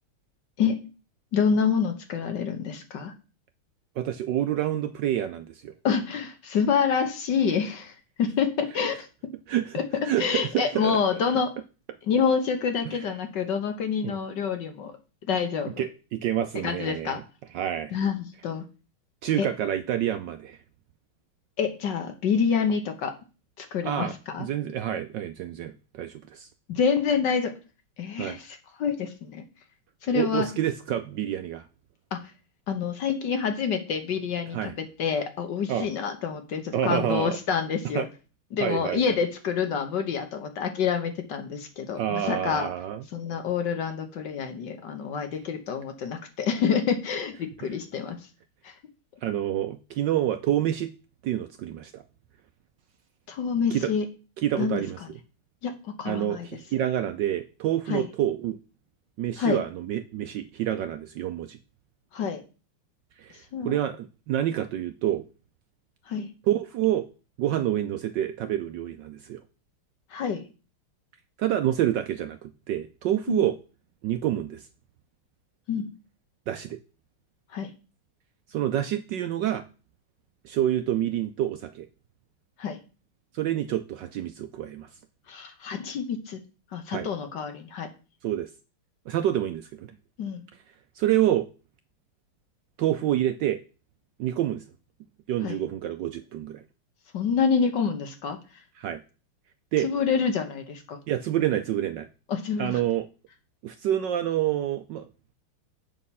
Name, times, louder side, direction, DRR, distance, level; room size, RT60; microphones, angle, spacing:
voice 1, 1.3-3.1 5.8-9.1 9.7-9.8 10.2-11.5 12.0-14.9 15.3-15.8 16.6-17.2 17.9-18.6 19.4-19.5 21.6-23.1 23.6-24.5 26.7-27.5 28.0-29.4 30.0-30.5 32.1-32.2 32.7-38.1 38.5-42.7 43.1-48.2 48.6-48.7 53.3-54.1 54.6-54.8 55.6-56.5 57.9-58.1 59.4-59.6 62.1-62.4 63.5-63.8 66.1-66.3 70.1-70.4 73.3-73.4 75.7-75.9 77.5-77.7 82.6-82.8 85.3-86.4 86.7-87.9 90.2-90.4 95.4-95.6 97.1-98.4 99.8-101.0 102.3-102.8, left 6 dB, 60° left, 7 dB, 1.5 m, -27 dB
voice 2, 4.0-5.7 9.5-9.8 10.0-11.0 12.8-13.0 14.0-14.2 15.8-17.2 17.5-18.0 19.2-20.6 23.8-24.1 24.4-26.5 28.2-28.4 30.1-31.7 34.5-34.7 35.7-35.9 36.7-37.4 37.9-38.1 38.6-39.0 42.0-43.0 47.6-47.7 49.2-50.9 51.2-52.0 53.7-53.9 54.4-55.0 56.1-58.6 59.2-61.6 63.2-63.4 63.6-65.2 66.5-67.1 67.4-69.4 71.4-73.6 74.0-74.7 76.5-76.8 78.5-79.6 80.4-81.9 83.3-84.9 86.9-87.1 88.2-88.5 89.1-89.9 91.0-91.5 92.8-93.6 94.2-94.6 95.3-96.6 98.8-99.0 99.7-99.9 101.1-102.1 102.6-103.1 103.6-105.1, right 11 dB, 70° right, 8 dB, 1.1 m, -27 dB
7.3 x 6.4 x 5.5 m, 0.34 s
omnidirectional pair, 2.4 m